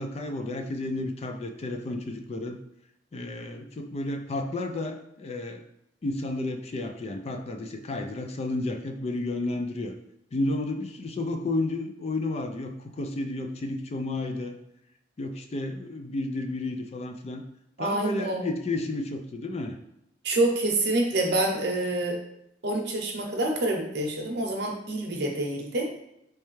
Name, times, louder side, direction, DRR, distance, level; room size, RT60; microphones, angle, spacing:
voice 1, 0.0-2.6 3.1-5.6 6.0-9.9 10.3-14.6 15.2-17.4 17.8-19.8, left 2 dB, 35° left, 5 dB, 0.3 m, -32 dB
voice 2, 17.8-18.5 20.2-22.2 22.6-25.9, right 2 dB, 65° right, 1 dB, 0.7 m, -27 dB
3.3 x 3.2 x 3.1 m, 0.81 s
head